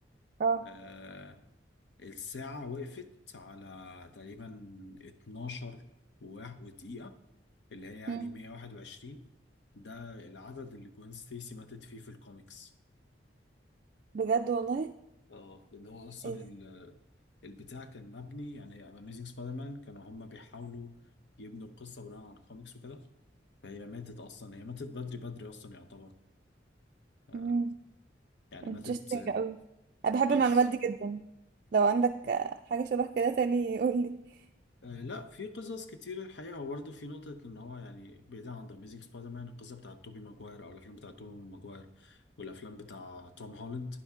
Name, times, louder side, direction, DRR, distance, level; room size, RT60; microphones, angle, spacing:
voice 1, 0.6-1.4 2.0-5.8 6.2-7.1 7.7-9.2 9.7-12.7 15.3-17.0 17.4-21.0 21.4-23.1 23.6-26.1 27.3-27.6 28.5-29.4 30.3-30.6 34.8-44.0, left 3 dB, 70° left, 9 dB, 0.8 m, -44 dB
voice 2, 14.1-14.9 16.2-16.4 27.3-27.7 28.6-29.6 30.0-31.2 31.7-34.2, right 5 dB, 45° right, 4 dB, 0.3 m, -28 dB
10.0 x 10.0 x 3.6 m, 0.91 s
head